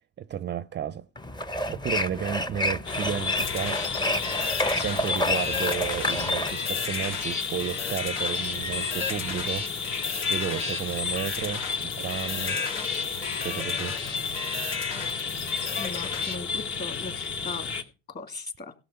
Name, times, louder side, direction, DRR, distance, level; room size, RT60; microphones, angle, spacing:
voice 1, 0.2-1.1 1.7-3.8 4.7-9.7 10.3-12.6 13.4-14.0, right 9 dB, 30° right, 0.5 m, -32 dB
sound 1, 1.2-6.5, left 1 dB, 10° left, 0.8 m, -29 dB
sound 2, 2.8-17.8, left 5 dB, 55° left, 2.6 m, -32 dB
sound 3, 3.4-16.4, left 5 dB, 80° left, 3.5 m, -34 dB
voice 2, 15.8-17.7 18.1-18.7, left 3 dB, 30° left, 2.3 m, -38 dB
16.5 x 7.3 x 5.7 m
supercardioid pair, 95°, 35 cm